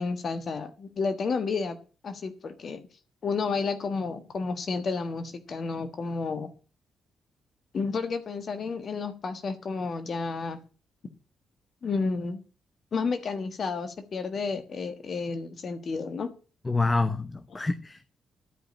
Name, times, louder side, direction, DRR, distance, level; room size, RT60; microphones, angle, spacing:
voice 1, 0.0-1.8 2.0-2.8 3.2-6.5 7.7-10.6 11.8-12.4 12.9-16.3, left 4 dB, 55° left, 1.4 m, -31 dB
voice 2, 16.6-18.1, left 3 dB, 25° left, 0.9 m, -27 dB
12.5 x 5.1 x 8.6 m
hypercardioid pair, 40°, 0 cm